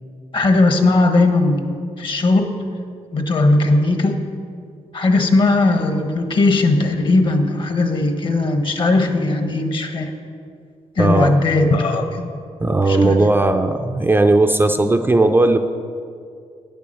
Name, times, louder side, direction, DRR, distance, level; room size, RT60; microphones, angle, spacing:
voice 1, 0.3-1.7 2.0-2.7 3.1-4.3 4.9-10.1 11.0-12.2 12.9-13.3, left 2 dB, 45° left, 6 dB, 1.1 m, -18 dB
voice 2, 11.0-11.4 12.6-15.6, right 2 dB, 20° right, 6 dB, 0.4 m, -16 dB
9.2 x 7.0 x 7.7 m, 2.3 s
cardioid pair, 115°, 12 cm